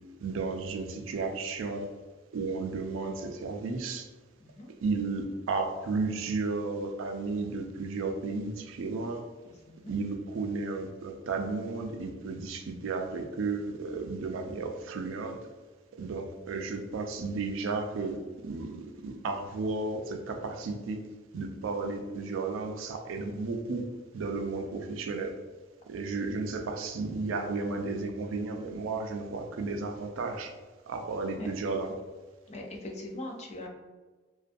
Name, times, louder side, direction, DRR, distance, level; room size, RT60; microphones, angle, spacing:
voice 1, 0.2-2.0 2.3-4.1 4.8-9.2 9.9-15.5 16.0-21.0 21.3-23.9 24.1-25.4 25.9-30.6 30.9-31.9, right 3 dB, 75° right, 5 dB, 0.4 m, -33 dB
voice 2, 4.4-4.7 9.7-9.9 31.4-31.5 32.5-33.7, left 1 dB, 35° left, 0 dB, 0.4 m, -40 dB
2.5 x 2.2 x 2.5 m, 1.3 s
head